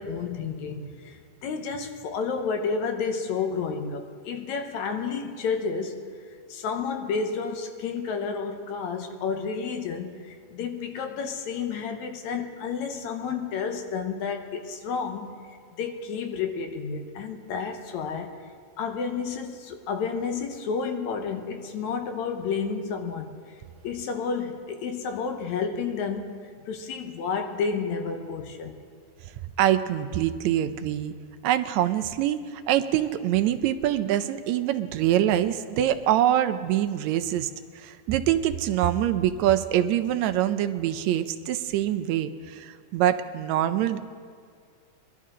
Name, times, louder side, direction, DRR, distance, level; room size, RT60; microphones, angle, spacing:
voice 1, 0.0-6.0 6.5-15.4 15.8-18.3 18.8-23.3 23.8-26.3 26.6-28.8, left 5 dB, 80° left, 2.3 m, -31 dB
voice 2, 29.6-31.1 31.4-37.5 37.8-44.0, right 11 dB, 80° right, 1.8 m, -24 dB
22.5 x 12.0 x 3.7 m
omnidirectional pair, 3.3 m